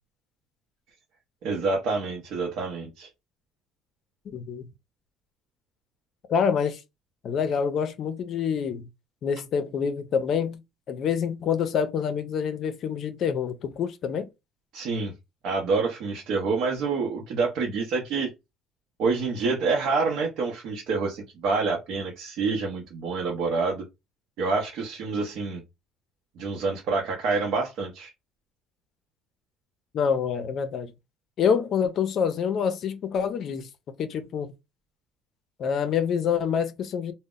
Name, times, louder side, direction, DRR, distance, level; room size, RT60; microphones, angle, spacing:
voice 1, 1.4-3.1 14.7-15.1 15.4-18.3 19.0-23.8 24.4-25.6 26.4-28.1, right 4 dB, 70° right, 0.7 m, -27 dB
voice 2, 4.3-4.6 6.3-6.8 7.2-8.9 9.2-10.6 10.9-14.3 29.9-30.9 31.4-33.7 34.0-34.5 35.6-37.1, left 7 dB, 55° left, 0.4 m, -26 dB
2.0 x 2.0 x 3.6 m
cardioid pair, 110°, 0 cm